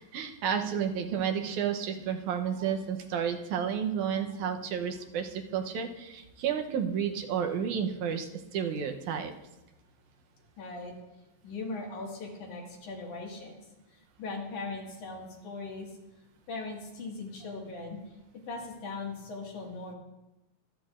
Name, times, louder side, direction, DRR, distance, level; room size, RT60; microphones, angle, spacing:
voice 1, 0.0-9.3, right 7 dB, 90° right, 5 dB, 2.4 m, -31 dB
voice 2, 10.6-10.9 11.4-13.6 13.9-15.9 16.5-18.0 18.3-19.9, left 3 dB, 90° left, -1 dB, 3.4 m, -39 dB
23.0 x 8.4 x 2.5 m, 0.96 s
omnidirectional pair, 3.3 m